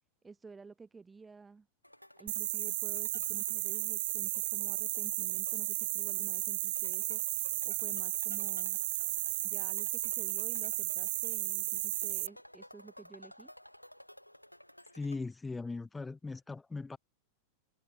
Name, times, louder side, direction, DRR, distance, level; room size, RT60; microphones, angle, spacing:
voice 1, 0.2-1.7 2.2-7.2 7.6-8.8 9.4-13.5, right 4 dB, 15° right, 1.6 m, -52 dB
sound 1, 1.8-15.2, left 1 dB, 90° left, 2.1 m, -54 dB
sound 2, 2.3-12.3, right 18 dB, 55° right, 0.6 m, -34 dB
voice 2, 14.9-17.0, left 3 dB, 10° left, 3.3 m, -39 dB
figure-of-eight pair, 90°, 0 cm